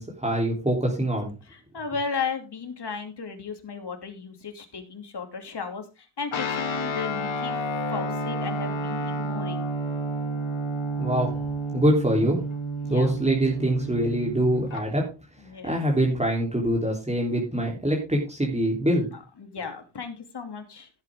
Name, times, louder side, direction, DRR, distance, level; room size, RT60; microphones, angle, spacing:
voice 1, 0.0-1.3 11.0-11.3 11.7-12.4 12.9-15.0 15.6-19.1, right 1 dB, 15° right, -1 dB, 3.5 m, -24 dB
voice 2, 1.4-7.6 7.9-9.7 12.9-13.2 15.4-15.8 19.1-20.9, left 5 dB, 55° left, 6 dB, 2.9 m, -35 dB
Guitar, 6.3-14.8, right 1 dB, 75° left, 2.4 m, -30 dB
16.0 x 8.2 x 3.7 m, 0.29 s
wide cardioid pair, 95°, 47 cm